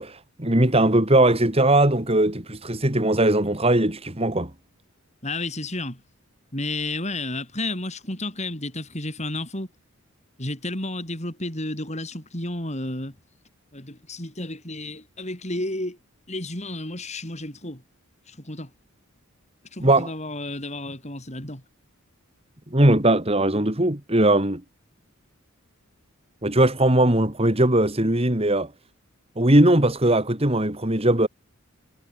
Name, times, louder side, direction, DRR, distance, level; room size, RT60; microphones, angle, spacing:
voice 1, 0.0-4.5 19.8-20.1 22.7-24.6 26.4-28.7 29.4-31.3, right 1 dB, 25° right, 2.7 m, -19 dB
voice 2, 5.2-6.0 6.5-9.7 10.4-13.1 13.7-16.0 16.3-17.8 18.3-18.7 19.7-21.6, left 2 dB, 30° left, 6.6 m, -32 dB
head